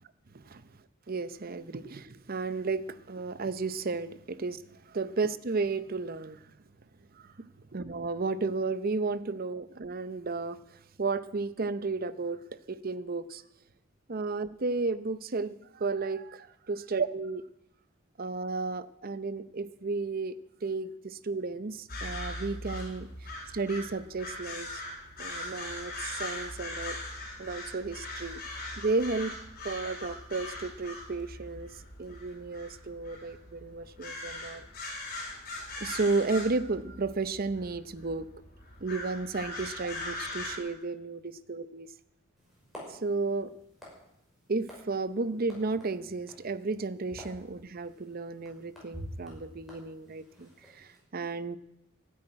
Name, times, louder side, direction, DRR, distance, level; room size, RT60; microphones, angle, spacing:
voice 1, 0.3-0.7 1.1-4.6 4.9-6.5 7.1-7.3 7.7-13.4 14.1-16.5 16.9-17.4 18.2-20.3 20.6-24.8 25.2-27.0 27.4-28.4 28.8-29.3 29.6-31.7 32.0-34.7 35.6-38.3 38.8-41.9 42.9-43.5 44.5-51.6, right 3 dB, 45° right, 14 dB, 0.7 m, -33 dB
sound 1, 21.9-40.6, left 2 dB, 50° left, 4.3 m, -41 dB
sound 2, 42.4-51.0, equal, ahead, 5.9 m, -50 dB
13.0 x 8.7 x 9.9 m, 0.82 s
head